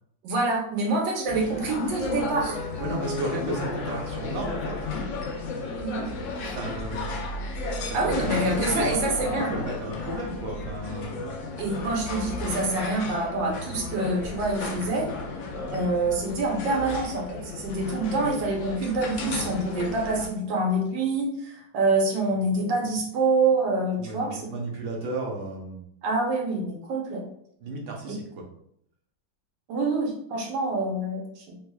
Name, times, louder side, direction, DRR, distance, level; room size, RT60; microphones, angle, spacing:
voice 1, 0.2-2.6 5.8-6.0 7.9-9.5 11.6-15.1 15.7-24.5 26.0-27.2 29.7-31.6, right 2 dB, 85° right, 0 dB, 1.5 m, -26 dB
sound 1, 1.3-20.3, left 3 dB, 90° left, 0.6 m, -34 dB
sound 2, 2.3-5.5, left 1 dB, 65° left, 1.0 m, -39 dB
voice 2, 2.8-4.8 6.5-7.1 7.7-11.2 24.0-25.9 27.6-28.2, right 2 dB, 60° right, -1 dB, 1.1 m, -33 dB
3.4 x 3.3 x 2.3 m, 0.70 s
omnidirectional pair, 1.9 m